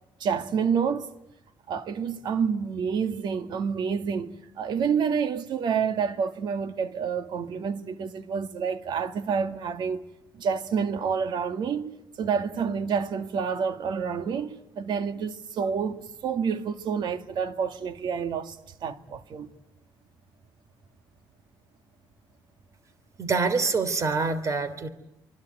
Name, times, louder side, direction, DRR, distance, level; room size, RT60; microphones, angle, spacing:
voice 1, 0.2-1.1 1.7-10.1 10.3-19.5, right 6 dB, 65° right, 2.0 m, -28 dB
voice 2, 23.2-24.9, right 4 dB, 40° right, 3.2 m, -25 dB
26.0 x 24.5 x 9.4 m
cardioid pair, 135°, 8 cm